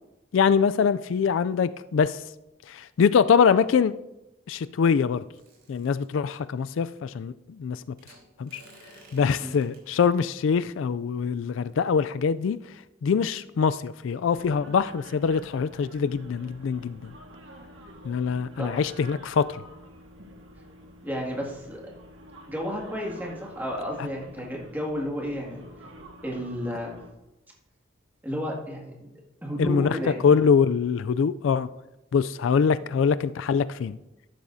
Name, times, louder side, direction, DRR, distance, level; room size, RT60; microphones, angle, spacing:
voice 1, 0.3-2.2 2.7-3.9 4.5-5.2 5.7-7.8 8.4-8.6 9.1-12.6 13.0-17.1 18.0-19.6 29.6-30.0 30.2-31.7 32.1-34.0, left 6 dB, 70° left, 14 dB, 0.3 m, -23 dB
sound 1, 5.3-6.4 8.0-9.8 10.4-10.6, right 2 dB, 55° right, 4.6 m, -53 dB
sound 2, 14.3-27.1, equal, 70° right, 1.7 m, -48 dB
voice 2, 21.0-21.8 22.5-25.7 26.2-27.0 28.2-29.1 29.4-30.4, equal, 10° right, -2 dB, 2.1 m, -32 dB
13.5 x 11.5 x 2.7 m, 0.94 s
head